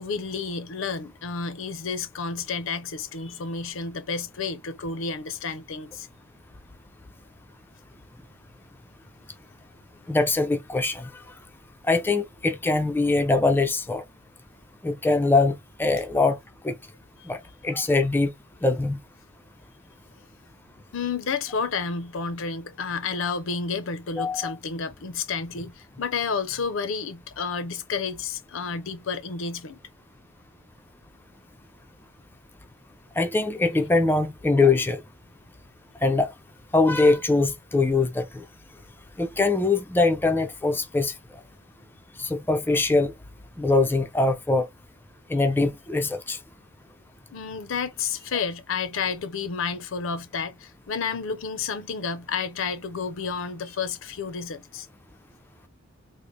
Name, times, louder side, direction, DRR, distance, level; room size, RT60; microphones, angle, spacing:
voice 1, 0.0-6.1 20.9-29.8 47.3-54.9, left 5 dB, 70° left, 0.6 m, -31 dB
voice 2, 10.1-11.2 11.9-14.0 14.8-16.4 16.6-16.8 17.3-18.3 18.6-19.0 24.2-24.5 33.2-35.0 36.0-36.3 36.7-38.4 39.2-41.4 42.2-43.1 43.6-44.7 45.3-46.4, left 3 dB, 10° left, 0.4 m, -23 dB
3.8 x 2.0 x 3.1 m
head